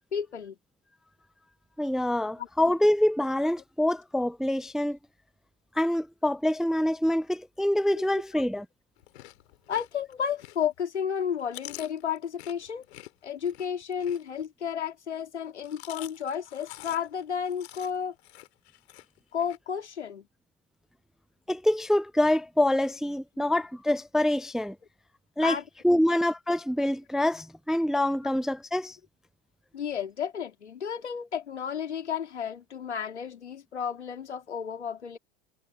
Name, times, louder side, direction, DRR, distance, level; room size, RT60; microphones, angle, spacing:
voice 1, 0.1-0.6 2.4-2.5 7.9-8.1 9.7-12.9 13.2-18.1 19.3-20.3 25.4-25.6 25.9-26.0 29.7-35.2, left 8 dB, 85° left, 2.4 m, -32 dB
voice 2, 1.8-5.0 5.8-8.7 21.5-24.8 25.4-25.6 25.8-29.0, left 1 dB, ahead, 0.4 m, -25 dB
Chewing mastication, 9.0-10.8 11.2-14.7 15.4-19.6, left 16 dB, 70° left, 3.3 m, -47 dB
hypercardioid pair, 85°, 33 cm